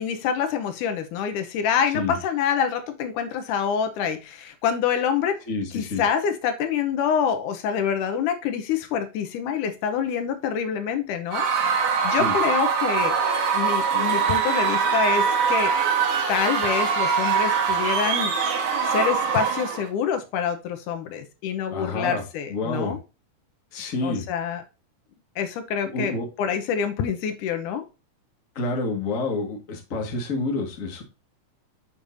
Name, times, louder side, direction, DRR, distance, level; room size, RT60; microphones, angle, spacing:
voice 1, 0.0-5.4 5.7-13.2 13.5-15.7 16.3-18.3 18.8-23.0 24.0-24.6 25.4-27.8, left 7 dB, 80° left, 8 dB, 2.4 m, -26 dB
voice 2, 5.5-6.0 12.1-12.3 21.7-22.2 22.5-23.0 23.7-24.2 25.8-26.3 28.5-31.0, left 3 dB, 35° left, 2 dB, 1.6 m, -28 dB
Screaming / Cheering / Crowd, 11.3-19.9, right 6 dB, 75° right, 2.8 m, -23 dB
7.1 x 6.4 x 2.6 m, 0.29 s
omnidirectional pair, 3.6 m